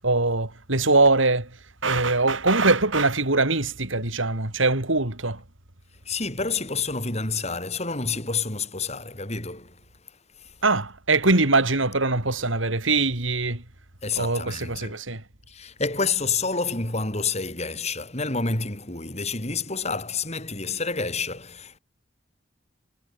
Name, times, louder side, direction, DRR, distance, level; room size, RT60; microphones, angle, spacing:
voice 1, 0.0-1.6 1.8-5.4 10.6-13.6 14.2-15.2, right 3 dB, 80° right, 4.1 m, -22 dB
voice 2, 6.1-9.8 10.4-10.6 14.0-15.0 15.5-21.8, left 4 dB, 35° left, 7.4 m, -29 dB
head